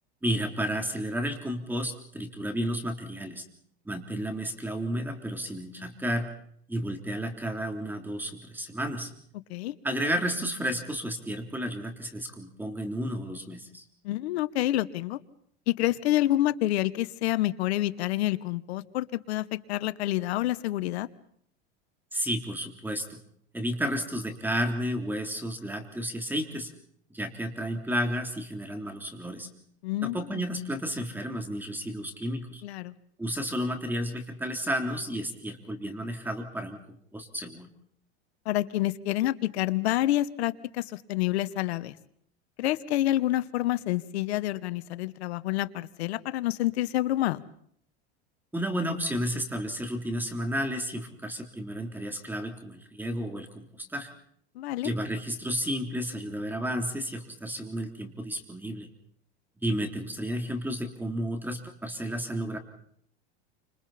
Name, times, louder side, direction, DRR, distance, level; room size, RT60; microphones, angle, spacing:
voice 1, 0.2-3.4 3.9-6.3 6.7-9.1 9.8-13.8 22.1-23.2 23.5-26.7 27.1-29.5 30.0-32.6 33.2-37.7 48.5-54.1 54.8-58.9 59.6-62.6, equal, 5° right, 4 dB, 3.5 m, -32 dB
voice 2, 14.0-15.2 15.7-21.1 29.8-30.4 32.6-32.9 38.4-42.0 42.6-47.4 54.5-54.9, left 15 dB, 80° left, 14 dB, 1.3 m, -28 dB
29.5 x 27.0 x 4.3 m, 0.67 s
supercardioid pair, 120°, 32 cm